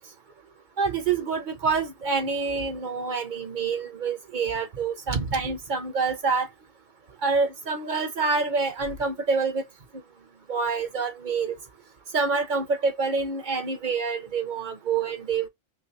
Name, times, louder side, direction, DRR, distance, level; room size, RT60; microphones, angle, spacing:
voice 1, 0.8-6.5 7.2-9.6 10.5-11.5 12.1-15.5, right 4 dB, 40° right, 0.9 m, -27 dB
3.3 x 3.2 x 2.6 m
omnidirectional pair, 1.3 m